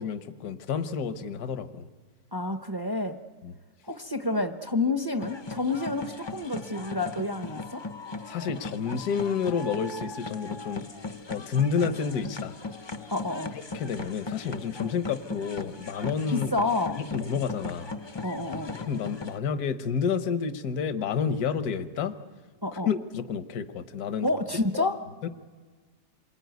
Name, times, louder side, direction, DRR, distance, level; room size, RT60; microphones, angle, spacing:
voice 1, 0.0-1.8 3.4-3.5 8.3-10.9 11.3-12.5 13.7-16.5 17.0-18.0 18.7-22.2 22.7-24.3 24.7-24.9 25.2-25.3, left 6 dB, 75° left, 10 dB, 1.5 m, -30 dB
voice 2, 2.3-3.2 3.9-7.8 13.1-13.5 16.3-17.0 18.2-18.7 22.6-22.9 24.2-25.0, left 2 dB, 20° right, 7 dB, 0.8 m, -29 dB
sound 1, 5.2-19.4, left 3 dB, 25° left, 0.6 m, -38 dB
27.5 x 21.5 x 9.3 m, 1.5 s
omnidirectional pair, 1.7 m